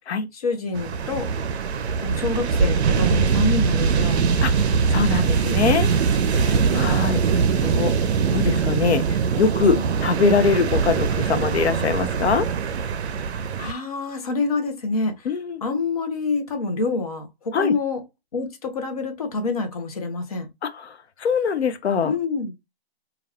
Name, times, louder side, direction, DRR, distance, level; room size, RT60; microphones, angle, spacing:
voice 1, 0.3-1.3 2.0-4.2 6.7-6.9 9.8-9.9 13.6-15.3 15.6-18.0 18.3-20.5 22.0-22.5, left 3 dB, 35° left, 0.5 m, -27 dB
sound 1, 0.7-13.7, right 6 dB, 80° right, 0.5 m, -22 dB
voice 2, 4.4-5.9 6.2-7.2 7.6-7.9 8.3-12.5 15.3-15.6 17.5-17.7 20.6-22.1, left 5 dB, 85° left, 0.6 m, -23 dB
2.3 x 2.2 x 3.3 m
hypercardioid pair, 165°, 32 cm